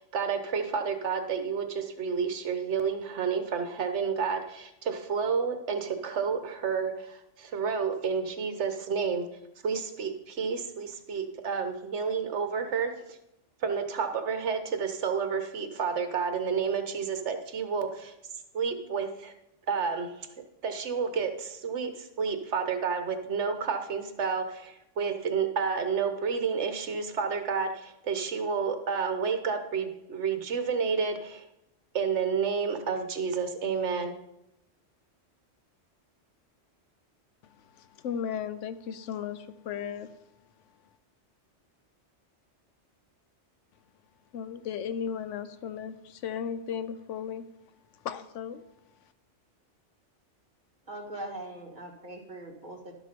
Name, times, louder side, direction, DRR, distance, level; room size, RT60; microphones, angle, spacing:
voice 1, 0.0-9.3 9.6-12.9 13.6-18.1 18.5-19.3 19.7-20.3 20.6-31.4 31.9-34.1, right 6 dB, 70° right, 7 dB, 1.2 m, -30 dB
voice 2, 37.4-40.2 44.3-47.5 47.9-48.6, left 8 dB, 85° left, 12 dB, 1.0 m, -36 dB
voice 3, 50.9-52.9, right 1 dB, 40° right, 2 dB, 1.6 m, -41 dB
12.0 x 6.2 x 5.2 m, 0.86 s
omnidirectional pair, 1.2 m